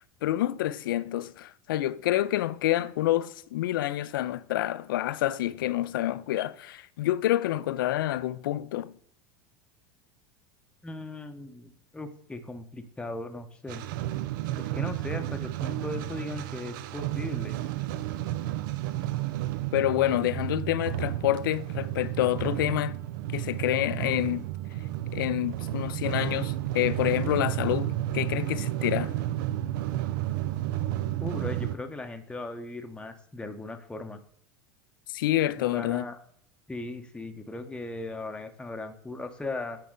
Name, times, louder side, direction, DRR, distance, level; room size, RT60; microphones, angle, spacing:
voice 1, 0.2-8.9 19.7-23.0 23.3-24.5 25.1-29.1 35.1-36.1, left 14 dB, 70° left, 0.4 m, -28 dB
voice 2, 10.8-13.8 14.6-17.6 31.2-34.2 35.6-36.2 36.7-39.8, left 2 dB, 10° left, 0.8 m, -38 dB
sound 1, 13.7-31.8, right 14 dB, 60° right, 0.4 m, -32 dB
8.6 x 4.6 x 3.7 m
hypercardioid pair, 85°, 12 cm